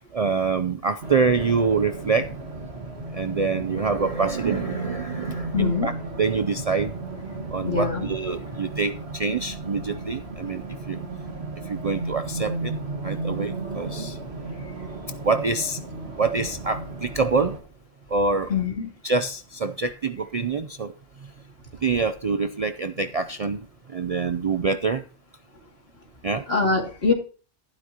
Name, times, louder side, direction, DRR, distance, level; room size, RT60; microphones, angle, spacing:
voice 1, 0.0-2.3 3.1-6.9 7.5-11.0 11.7-12.7 13.0-14.2 15.2-15.8 16.2-17.6 18.1-18.5 19.0-20.9 21.8-25.0 26.2-26.4, right 4 dB, 45° right, 10 dB, 0.5 m, -25 dB
Race car auto racing, 1.0-17.6, right 3 dB, 65° right, 1.9 m, -34 dB
voice 2, 5.5-5.9 7.6-8.1 18.5-18.9 26.5-27.1, left 4 dB, 60° left, 2 dB, 2.7 m, -23 dB
12.0 x 11.5 x 2.9 m, 0.36 s
omnidirectional pair, 1.2 m